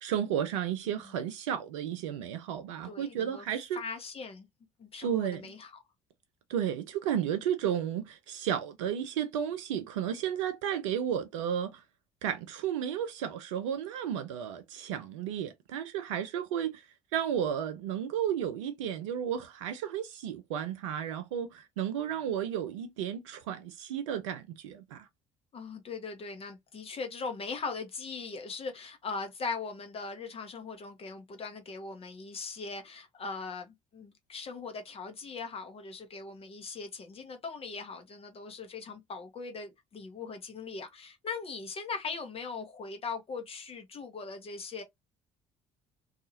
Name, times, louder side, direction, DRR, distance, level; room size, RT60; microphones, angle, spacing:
voice 1, 0.0-3.8 5.0-5.5 6.5-11.8 12.2-25.1, right 9 dB, 70° right, 0.4 m, -33 dB
voice 2, 2.8-3.4 3.7-4.5 4.8-5.7 25.5-44.8, left 4 dB, 35° left, 0.7 m, -40 dB
2.7 x 2.4 x 2.7 m
figure-of-eight pair, 55°, 16 cm